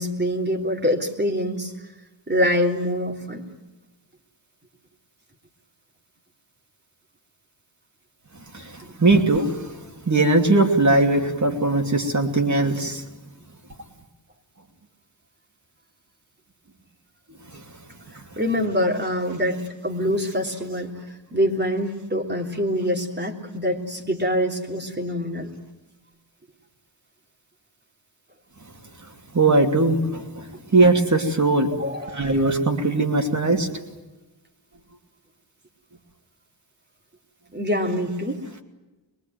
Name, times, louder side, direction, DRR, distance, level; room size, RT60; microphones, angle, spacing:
voice 1, 0.0-1.7 2.3-3.4 8.8-8.9 18.4-21.0 21.3-25.5 31.8-32.3 37.5-38.6, equal, 25° right, 2 dB, 3.3 m, -25 dB
voice 2, 8.5-9.7 10.1-13.0 17.5-17.6 29.3-31.7 32.1-33.7, right 2 dB, 40° right, 3 dB, 2.9 m, -20 dB
23.0 x 22.5 x 9.3 m, 1.1 s
wide cardioid pair, 130°, 45 cm